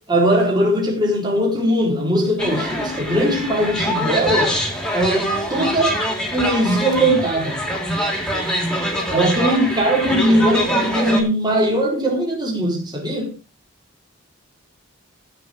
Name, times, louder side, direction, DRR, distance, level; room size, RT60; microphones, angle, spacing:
voice 1, 0.1-4.6 4.9-6.0 6.3-7.6 9.1-13.3, right 1 dB, 20° right, 4.1 m, -20 dB
sound 1, 2.4-11.2, equal, 5° left, 2.8 m, -24 dB
15.5 x 6.3 x 5.2 m
head